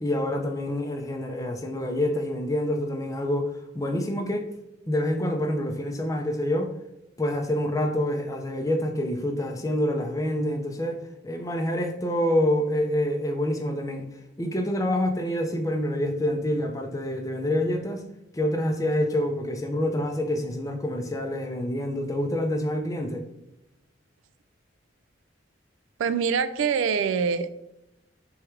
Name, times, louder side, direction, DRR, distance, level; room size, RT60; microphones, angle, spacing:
voice 1, 0.0-4.5 4.9-6.7 7.2-11.0 11.2-14.1 14.4-18.0 18.3-23.2, left 1 dB, 15° left, 4 dB, 0.5 m, -27 dB
voice 2, 26.0-27.5, right 6 dB, 80° right, 13 dB, 0.3 m, -25 dB
3.4 x 3.1 x 4.6 m, 0.87 s
head